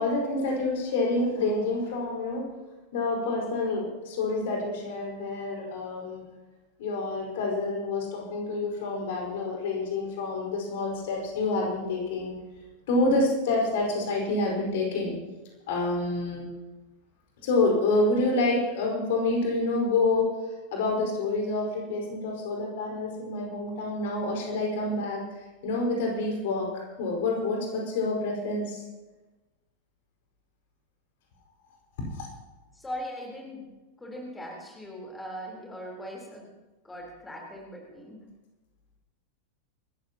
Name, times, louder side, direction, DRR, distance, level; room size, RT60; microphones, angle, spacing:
voice 1, 0.0-2.5 2.9-6.2 6.8-12.3 12.9-15.1 15.7-16.4 17.4-20.4 20.7-28.8 32.1-32.3, left 2 dB, 55° left, -1 dB, 4.8 m, -28 dB
voice 2, 32.7-33.6 34.0-36.5 36.8-38.2, equal, 10° left, -1 dB, 3.9 m, -40 dB
26.5 x 14.0 x 3.0 m, 1.1 s
figure-of-eight pair, 90°, 0 cm